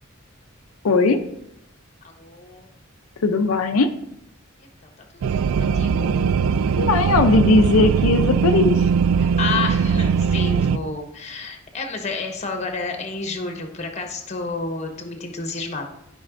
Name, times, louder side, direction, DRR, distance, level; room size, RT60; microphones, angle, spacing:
voice 1, 0.8-1.2 3.2-3.9 6.8-8.9, left 3 dB, 85° left, 5 dB, 0.5 m, -18 dB
voice 2, 2.0-2.7 4.6-4.7 5.1-6.2 9.2-15.9, left 4 dB, 35° left, 3 dB, 1.1 m, -30 dB
sound 1, 5.2-10.8, right 6 dB, 75° right, 0.3 m, -20 dB
12.5 x 5.3 x 2.5 m, 0.79 s
head